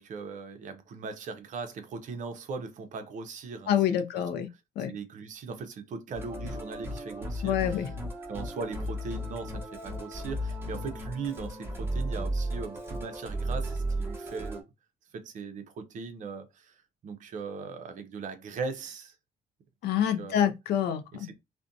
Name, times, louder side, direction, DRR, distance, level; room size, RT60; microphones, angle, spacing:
voice 1, 0.0-4.0 4.9-7.9 8.3-14.6 15.1-16.8 17.0-19.1 20.0-20.5 21.1-21.3, right 4 dB, 50° right, 0.6 m, -39 dB
voice 2, 3.7-4.5 4.8-4.9 7.4-7.9 19.8-21.3, left 10 dB, 75° left, 0.4 m, -27 dB
Musical instrument, 6.1-14.6, right 1 dB, 15° right, 0.8 m, -35 dB
2.5 x 2.1 x 2.5 m
cardioid pair, 120°, 17 cm